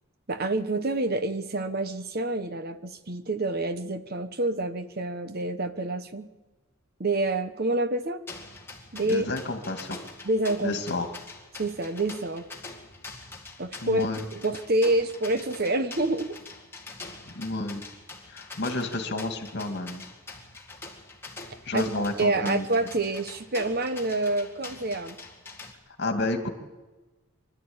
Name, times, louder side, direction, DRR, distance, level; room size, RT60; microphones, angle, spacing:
voice 1, 0.3-6.3 7.0-8.2 8.9-9.3 10.2-10.8 11.6-12.5 13.6-14.0 14.4-16.4 21.7-21.9 22.2-25.2, right 2 dB, 45° right, 10 dB, 1.0 m, -27 dB
sound 1, 8.3-25.7, left 3 dB, 10° left, 2.2 m, -44 dB
voice 2, 9.1-10.0 10.6-11.1 13.8-14.2 17.3-17.8 18.2-20.1 21.7-22.7 26.0-26.5, left 2 dB, 50° left, 5 dB, 2.3 m, -30 dB
25.0 x 12.5 x 8.8 m, 1.2 s
head